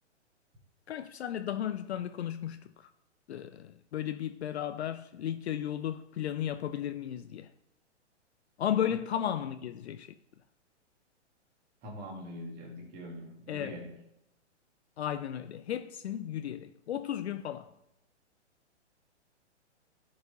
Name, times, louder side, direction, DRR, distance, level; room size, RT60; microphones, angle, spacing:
voice 1, 0.9-2.9 3.3-7.5 8.6-10.1 13.5-13.7 15.0-17.7, left 10 dB, 65° left, 0.5 m, -34 dB
voice 2, 11.8-13.9, equal, 25° right, 1.8 m, -43 dB
13.5 x 4.7 x 2.8 m
hypercardioid pair, 125°, 36 cm